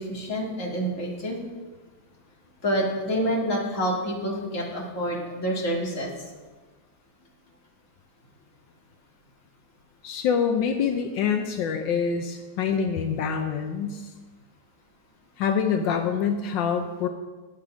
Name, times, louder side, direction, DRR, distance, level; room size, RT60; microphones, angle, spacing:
voice 1, 0.0-1.4 2.6-6.1, equal, 45° left, -3 dB, 2.5 m, -27 dB
voice 2, 10.0-14.1 15.4-17.1, left 6 dB, 80° left, 5 dB, 1.4 m, -25 dB
10.5 x 8.4 x 5.0 m, 1.3 s
omnidirectional pair, 2.0 m